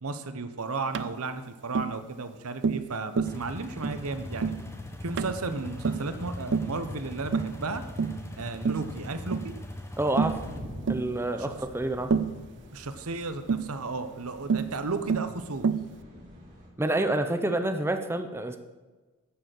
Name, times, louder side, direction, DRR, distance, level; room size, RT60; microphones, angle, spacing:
voice 1, 0.0-4.5 5.0-7.8 8.4-9.5 11.4-11.6 12.7-15.7, right 3 dB, 70° right, 10 dB, 1.0 m, -34 dB
Tap, 0.9-1.1 1.8-2.0 2.6-2.9 3.2-3.4 3.8-4.0 4.4-4.6 5.2-5.4 5.8-6.1 6.5-6.8 7.3-7.6 8.0-8.2 8.7-8.9 9.3-9.5 10.2-10.4 10.9-11.1 12.1-12.4 13.5-13.7 14.5-14.7 15.1-15.3 15.6-15.9, right 5 dB, 55° right, 0.5 m, -27 dB
sound 1, 3.3-10.6, left 1 dB, 10° left, 1.1 m, -40 dB
voice 2, 10.0-10.4 10.9-12.1 16.8-18.6, right 1 dB, 10° right, 7 dB, 0.7 m, -28 dB
sound 2, 10.1-16.7, equal, 40° right, 4.0 m, -46 dB
11.0 x 6.7 x 7.6 m, 1.3 s
head